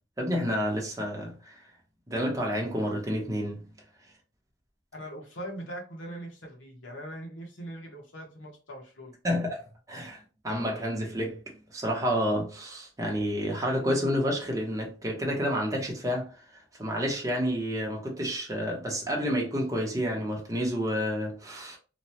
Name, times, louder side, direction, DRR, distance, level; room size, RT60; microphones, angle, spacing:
voice 1, 0.2-1.6 2.1-3.6 9.2-21.8, equal, 20° right, 0.8 m, -30 dB
voice 2, 4.9-9.1, right 1 dB, 80° left, 1.0 m, -41 dB
3.0 x 2.2 x 2.7 m
head